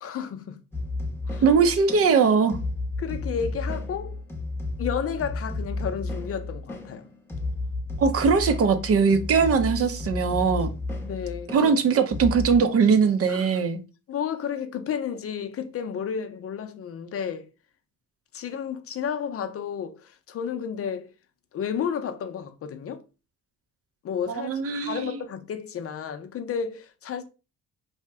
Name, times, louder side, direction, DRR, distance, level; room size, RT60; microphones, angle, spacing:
voice 1, 0.0-0.6 1.3-1.4 3.0-4.2 4.8-7.1 11.0-11.7 13.3-13.5 14.1-17.5 18.3-21.1 21.5-23.0 24.0-27.2, left 7 dB, 50° left, 0.5 m, -32 dB
sound 1, 0.7-12.6, left 2 dB, 10° left, 0.7 m, -32 dB
voice 2, 1.4-2.6 8.0-10.7 11.5-13.8 24.3-25.2, right 5 dB, 50° right, 0.5 m, -21 dB
2.7 x 2.1 x 3.4 m
cardioid pair, 90°, 30 cm